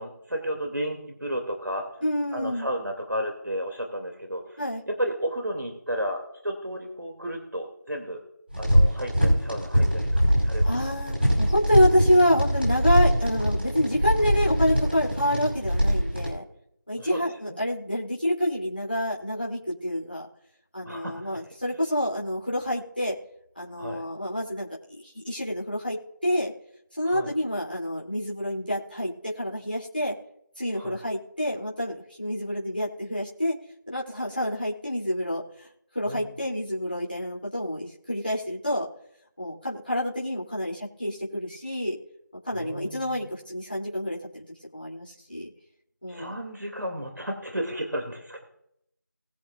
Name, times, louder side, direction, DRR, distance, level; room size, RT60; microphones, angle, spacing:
voice 1, 0.0-2.0 2.3-4.6 4.9-8.2 8.6-10.9 16.9-17.2 17.5-17.6 20.8-21.3 23.8-24.0 27.0-27.3 30.8-31.0 36.0-36.4 42.5-43.2 46.1-48.5, equal, 75° right, 3 dB, 2.7 m, -33 dB
voice 2, 2.0-2.7 4.6-4.8 10.6-16.4 16.9-20.3 20.7-23.1 23.5-26.5 27.0-30.1 30.6-33.5 33.9-35.7 35.9-38.9 39.4-42.0 42.4-44.4 44.7-45.5 46.0-46.3, equal, 30° left, -5 dB, 3.1 m, -27 dB
sound 1, 8.5-16.3, equal, 35° right, 5.1 m, -23 dB
21.5 x 7.4 x 2.5 m, 0.75 s
figure-of-eight pair, 180°, 10 cm